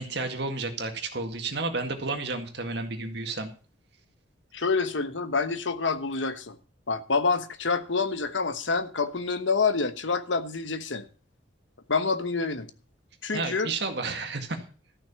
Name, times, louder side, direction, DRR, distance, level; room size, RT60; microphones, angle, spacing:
voice 1, 0.0-3.5 13.3-14.6, right 3 dB, 60° right, 2.0 m, -31 dB
voice 2, 4.5-6.6 6.9-11.1 11.9-12.7 13.2-13.7, left 4 dB, 80° left, 1.2 m, -27 dB
14.0 x 6.1 x 7.0 m
head